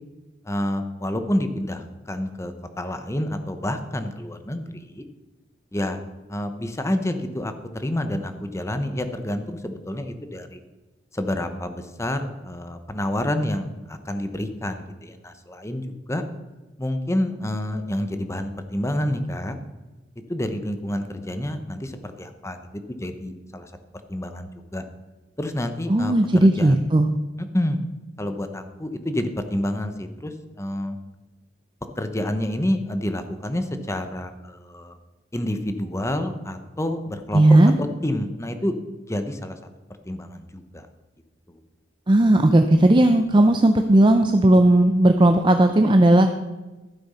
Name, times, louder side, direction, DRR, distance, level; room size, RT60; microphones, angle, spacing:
voice 1, 0.4-5.0 5.7-6.0 6.3-10.6 11.1-16.2 16.8-19.6 20.3-22.6 22.9-23.7 24.1-24.8 25.4-26.9 27.4-27.8 28.2-31.0 32.0-35.0 35.3-38.8 39.1-39.6 40.0-40.9 41.5-41.6, left 1 dB, 15° left, 8 dB, 0.9 m, -28 dB
voice 2, 25.9-27.1 37.3-37.7 42.1-46.3, right 1 dB, 25° right, 6 dB, 0.6 m, -16 dB
12.5 x 7.6 x 5.6 m, 1.1 s
head